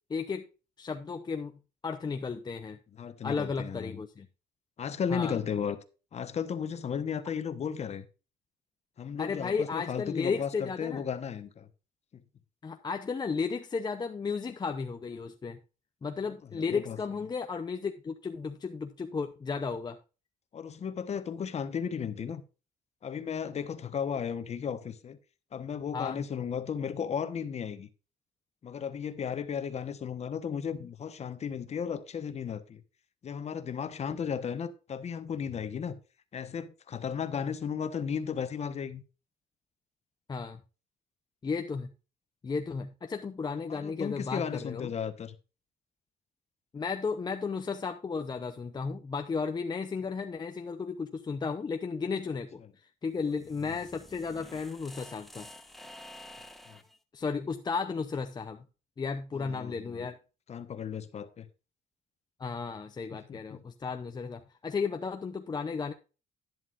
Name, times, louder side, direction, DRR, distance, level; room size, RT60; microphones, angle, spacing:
voice 1, 0.1-0.5 0.8-2.8 3.2-4.3 5.1-5.4 9.2-11.0 12.6-15.6 16.0-20.0 25.9-26.2 40.3-40.6 41.4-41.9 42.4-44.9 46.7-55.5 57.1-58.6 59.0-60.2 62.4-65.9, left 5 dB, 25° left, 0.7 m, -34 dB
voice 2, 3.0-4.0 4.8-5.8 6.1-8.1 9.0-11.7 16.5-17.0 20.5-22.4 23.0-25.2 25.5-27.9 28.6-32.8 33.2-36.0 36.3-39.0 43.7-45.3 53.7-53.8 56.7-56.8 59.3-60.1 60.5-61.5 63.3-63.6, left 7 dB, 40° left, 1.1 m, -35 dB
sound 1, 53.1-57.0, left 1 dB, ahead, 1.0 m, -50 dB
11.0 x 10.5 x 2.5 m
cardioid pair, 110°, 17 cm